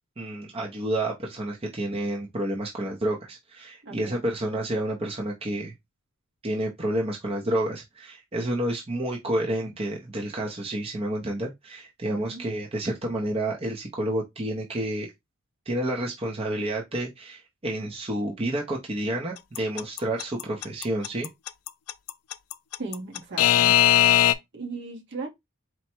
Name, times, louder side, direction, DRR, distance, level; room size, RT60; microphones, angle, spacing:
voice 1, 0.2-5.7 6.4-15.1 15.7-21.3, right 1 dB, 25° right, 0.6 m, -30 dB
voice 2, 3.8-4.2 12.0-12.4 22.8-23.7 24.5-25.3, right 3 dB, 55° right, 1.1 m, -37 dB
Alarm / Clock, 19.5-24.3, left 12 dB, 80° left, 0.4 m, -19 dB
4.4 x 2.1 x 4.3 m
head